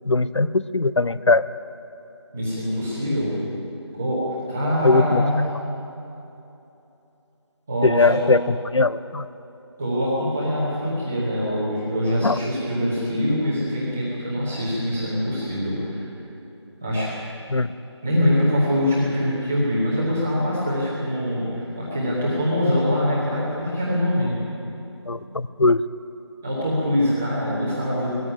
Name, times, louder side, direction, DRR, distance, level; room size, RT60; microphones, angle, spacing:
voice 1, 0.1-1.5 4.8-5.2 7.8-9.3 12.2-12.4 17.5-17.7 25.1-25.8, left 3 dB, 70° left, 16 dB, 0.7 m, -20 dB
voice 2, 2.3-3.3 4.0-5.4 7.7-8.2 9.8-16.0 16.8-17.1 18.0-24.3 26.4-28.2, equal, 5° right, -9 dB, 0.9 m, -23 dB
19.0 x 14.0 x 9.9 m, 2.9 s
figure-of-eight pair, 175°, 15 cm